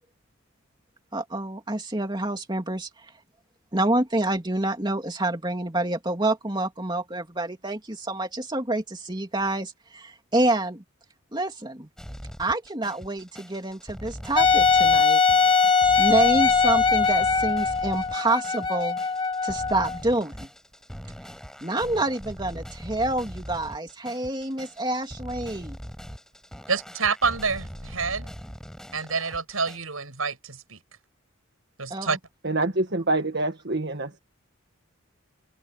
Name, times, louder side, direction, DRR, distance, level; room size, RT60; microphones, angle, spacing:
voice 1, 1.1-2.9 3.7-10.8 11.3-11.9 12.4-15.2 16.0-19.0 19.4-20.5 21.6-25.8 31.9-32.2, right 2 dB, 20° right, 3.0 m, -27 dB
sound 1, 12.0-29.8, equal, 5° left, 5.7 m, -41 dB
Wind instrument woodwind instrument, 14.4-20.0, left 5 dB, 25° left, 1.6 m, -21 dB
voice 2, 26.7-28.3 28.9-30.8 31.8-32.2, right 5 dB, 80° right, 7.2 m, -28 dB
voice 3, 32.4-34.2, right 2 dB, 50° right, 1.7 m, -26 dB
head